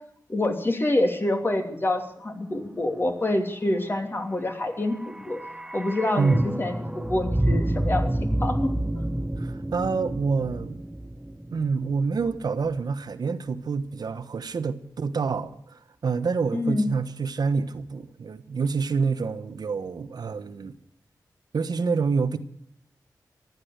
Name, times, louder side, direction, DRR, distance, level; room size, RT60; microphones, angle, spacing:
voice 1, 0.3-5.4 5.7-8.7 16.5-16.9, left 1 dB, 30° left, 2.9 m, -26 dB
sound 1, 4.6-12.8 13.0-13.1, right 1 dB, 10° right, 0.7 m, -29 dB
voice 2, 6.2-6.5 9.4-10.8 11.5-20.8 21.5-22.4, right 5 dB, 70° right, 1.1 m, -27 dB
15.0 x 11.0 x 8.0 m
wide cardioid pair, 80°, 7 cm